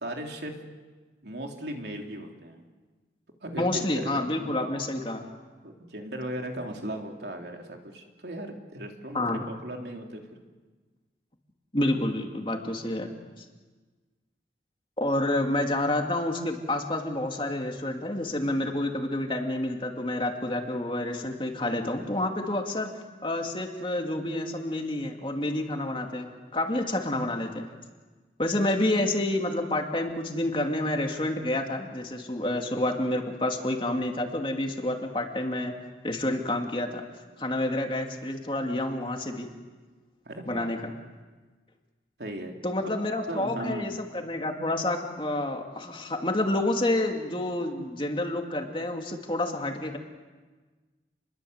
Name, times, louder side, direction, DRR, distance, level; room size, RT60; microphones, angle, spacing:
voice 1, 0.0-0.6 1.2-2.6 3.4-4.5 5.6-10.2 40.2-40.7 42.2-42.6 43.3-43.9, right 1 dB, 70° right, 2 dB, 3.3 m, -37 dB
voice 2, 3.6-5.3 9.1-9.5 11.7-13.1 13.4-13.5 15.0-22.9 23.2-27.7 28.4-35.7 36.0-37.0 37.4-39.5 40.5-40.9 42.6-50.0, left 1 dB, 30° left, 3 dB, 2.6 m, -29 dB
29.0 x 22.0 x 8.1 m, 1.3 s
head